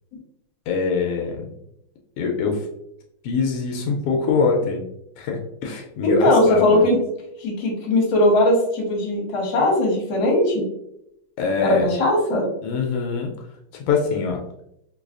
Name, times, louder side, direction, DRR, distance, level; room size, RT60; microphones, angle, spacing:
voice 1, 0.7-1.5 2.2-2.7 3.2-4.8 5.2-6.8 11.4-11.9 12.6-13.3 13.8-14.4, left 5 dB, 90° left, 1 dB, 1.5 m, -23 dB
voice 2, 6.0-7.0 7.4-10.7 11.6-12.5, left 1 dB, 65° left, -2 dB, 1.7 m, -19 dB
4.8 x 2.3 x 2.4 m, 0.80 s
omnidirectional pair, 2.4 m